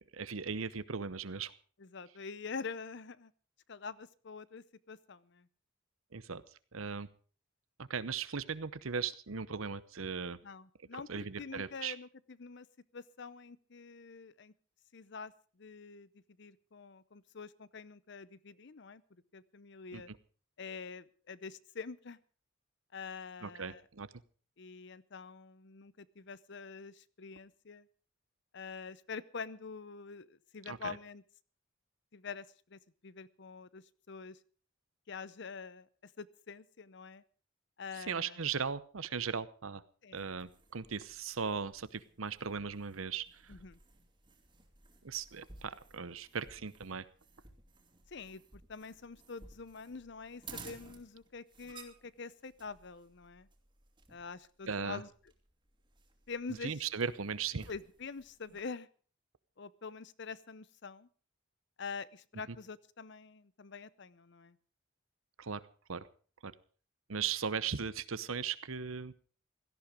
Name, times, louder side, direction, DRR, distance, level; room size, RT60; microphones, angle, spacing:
voice 1, 0.1-1.5 6.1-6.4 6.7-7.1 7.8-10.4 11.1-12.0 19.9-20.0 23.4-24.1 30.7-31.0 38.0-39.8 40.1-43.5 45.0-47.1 54.7-55.0 56.6-57.7 65.4-65.6 65.9-66.1 66.4-66.5 67.1-69.1, right 6 dB, 85° right, 16 dB, 0.9 m, -38 dB
voice 2, 1.8-3.3 3.7-5.5 10.4-12.7 12.9-14.5 14.9-19.0 19.3-20.1 20.6-22.2 22.9-23.8 24.6-27.9 28.5-31.2 32.1-34.4 35.1-37.2 37.8-38.4 40.0-40.3 43.5-43.8 48.1-53.5 54.1-55.1 56.3-56.7 57.7-58.9 59.6-61.1 61.8-64.6, left 5 dB, 55° left, 18 dB, 0.7 m, -46 dB
sound 1, 40.2-58.6, right 4 dB, 25° right, 2.4 m, -57 dB
17.0 x 14.0 x 5.0 m, 0.42 s
head